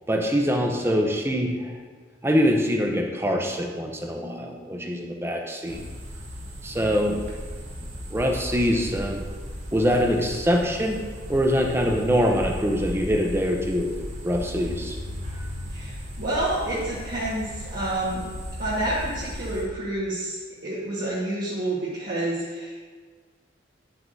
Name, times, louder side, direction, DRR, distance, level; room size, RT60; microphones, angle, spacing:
voice 1, 0.1-1.7 2.2-5.8 6.6-7.3 8.1-9.2 9.7-11.0 11.3-13.9 14.2-15.0 15.3-15.4, equal, 15° right, 2 dB, 0.7 m, -24 dB
sound 1, 5.7-19.6, equal, 85° right, 2.1 m, -36 dB
voice 2, 15.7-18.3 18.6-23.0, right 1 dB, 45° right, -9 dB, 1.5 m, -29 dB
9.5 x 7.9 x 2.7 m, 1.5 s
head